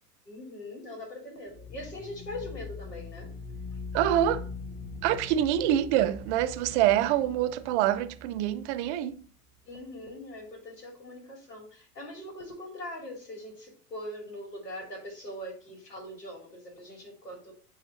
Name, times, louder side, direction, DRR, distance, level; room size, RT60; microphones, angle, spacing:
voice 1, 0.3-3.3 9.6-17.5, left 1 dB, 90° left, 2.6 m, -42 dB
sound 1, 1.5-10.2, left 3 dB, 20° left, 1.6 m, -42 dB
voice 2, 3.9-4.4 5.0-9.2, right 12 dB, 45° right, 0.7 m, -26 dB
8.6 x 3.3 x 3.9 m
hypercardioid pair, 95°, 47 cm